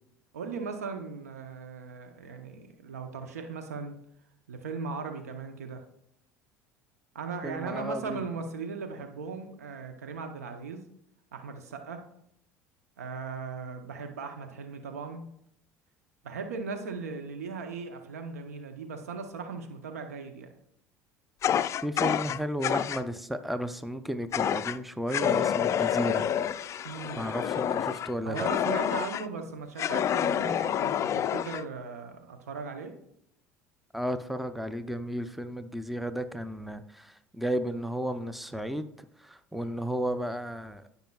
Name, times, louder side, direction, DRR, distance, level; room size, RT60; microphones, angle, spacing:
voice 1, 0.3-4.0 4.5-5.8 7.1-10.8 11.3-12.0 13.0-15.2 16.2-20.5 26.8-27.2 28.2-32.9, right 5 dB, 85° right, 6 dB, 0.9 m, -38 dB
voice 2, 7.4-8.3 21.8-26.3 27.2-28.5 33.9-38.9 39.2-40.8, equal, ahead, 11 dB, 0.6 m, -33 dB
Fire, 21.4-23.0 24.3-24.8 25.1-29.3 29.8-31.6, left 9 dB, 40° left, 0.3 m, -28 dB
14.0 x 5.3 x 2.4 m, 0.74 s
hypercardioid pair, 70°, 8 cm